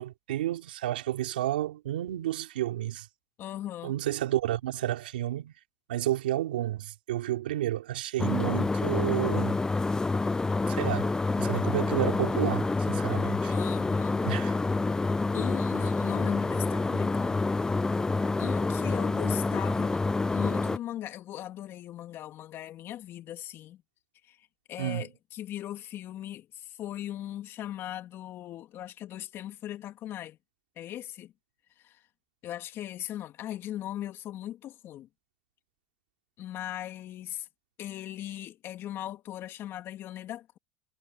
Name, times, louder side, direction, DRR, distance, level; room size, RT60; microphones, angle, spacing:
voice 1, 0.0-3.1 3.8-5.5 5.9-9.6 10.7-13.5 14.2-14.5 24.8-25.1, right 13 dB, 85° right, 2.8 m, -31 dB
voice 2, 3.4-3.9 13.5-14.2 15.3-17.4 18.4-20.0 20.3-23.8 24.2-30.4 30.8-31.3 31.8-32.0 32.4-35.1 36.4-37.5 37.8-40.6, left 12 dB, 50° left, 2.7 m, -39 dB
sound 1, 8.2-20.8, left 3 dB, 15° left, 0.4 m, -27 dB
hypercardioid pair, 85°, 5 cm